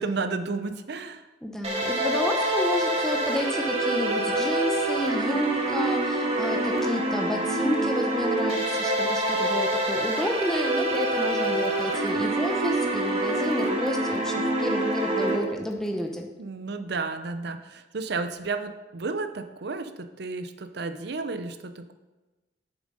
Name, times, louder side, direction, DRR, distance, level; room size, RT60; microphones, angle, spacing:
voice 1, 0.0-1.2 16.4-21.9, right 3 dB, 60° right, 9 dB, 0.6 m, -32 dB
voice 2, 1.4-16.3, left 1 dB, 5° left, 1 dB, 0.7 m, -30 dB
sound 1, 1.6-15.4, right 1 dB, 35° right, 1.5 m, -26 dB
7.3 x 7.1 x 5.3 m, 1.1 s
head